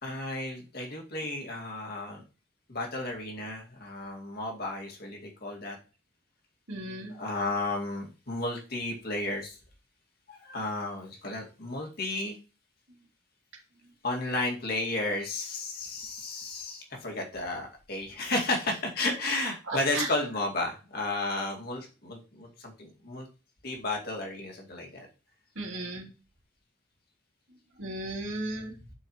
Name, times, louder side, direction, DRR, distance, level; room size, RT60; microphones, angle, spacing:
voice 1, 0.0-2.2 2.7-5.8 7.1-9.6 10.3-12.4 14.0-23.3 23.6-25.1, left 2 dB, 50° left, 0 dB, 2.2 m, -33 dB
voice 2, 6.7-7.1 19.7-20.1 25.5-26.1 27.8-28.7, right 2 dB, 70° right, -1 dB, 3.0 m, -35 dB
11.5 x 4.9 x 3.1 m, 0.32 s
head